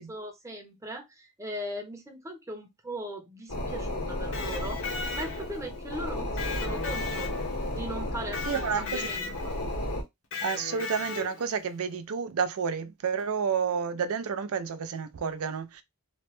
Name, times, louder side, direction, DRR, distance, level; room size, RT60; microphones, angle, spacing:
voice 1, 0.0-7.3 7.7-9.6, equal, 15° right, 0.7 m, -39 dB
sound 1, 3.5-10.0, left 1 dB, 90° left, 1.4 m, -33 dB
Electric guitar, 4.2-5.7 6.4-7.8 8.3-9.6 10.3-11.5, left 4 dB, 65° left, 0.8 m, -37 dB
voice 2, 8.5-9.1 10.4-15.8, right 6 dB, 70° right, 0.4 m, -30 dB
3.0 x 2.1 x 3.1 m
head